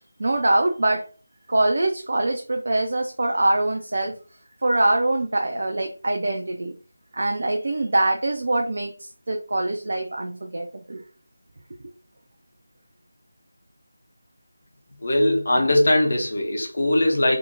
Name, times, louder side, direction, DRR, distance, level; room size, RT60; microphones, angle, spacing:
voice 1, 0.2-1.1 1.5-4.2 4.6-6.7 7.1-11.0, right 2 dB, 50° right, 0.3 m, -23 dB
voice 2, 15.0-17.4, left 1 dB, 50° left, 0.7 m, -20 dB
2.6 x 2.0 x 2.7 m
figure-of-eight pair, 165°, 0 cm